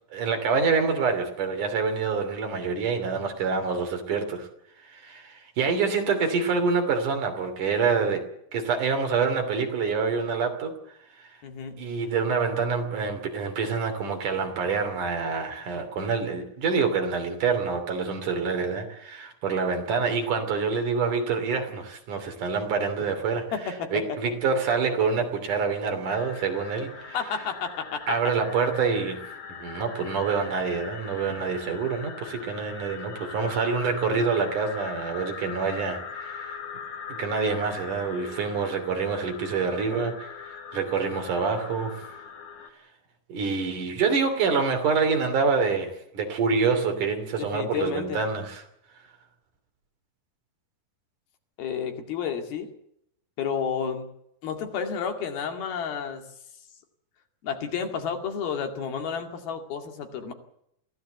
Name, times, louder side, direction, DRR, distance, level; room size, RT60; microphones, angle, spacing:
voice 1, 0.1-4.5 4.8-8.3 8.5-10.8 11.2-11.3 11.8-27.2 28.1-36.6 37.1-42.1 43.3-48.6, right 5 dB, 55° right, 5 dB, 4.3 m, -26 dB
voice 2, 11.4-11.8 23.5-24.2 27.1-28.2 47.4-48.3 51.6-52.7 53.4-54.1 54.4-56.2 57.4-60.3, left 7 dB, 75° left, 5 dB, 4.1 m, -31 dB
sound 1, 26.1-42.7, left 6 dB, 50° left, 3.3 m, -41 dB
23.5 x 16.0 x 8.0 m, 0.76 s
omnidirectional pair, 4.4 m